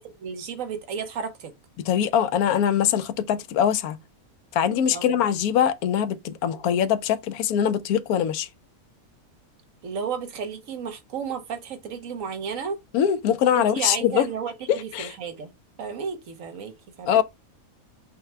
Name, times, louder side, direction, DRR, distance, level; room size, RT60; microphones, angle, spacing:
voice 1, 0.2-1.5 4.9-5.2 9.8-12.8 13.5-15.5 15.8-17.2, right 6 dB, 65° right, 1.2 m, -33 dB
voice 2, 1.9-4.0 4.5-8.5 12.9-14.3 14.7-15.1 17.1-17.2, left 9 dB, 85° left, 1.1 m, -22 dB
5.7 x 2.2 x 4.3 m
omnidirectional pair, 1.5 m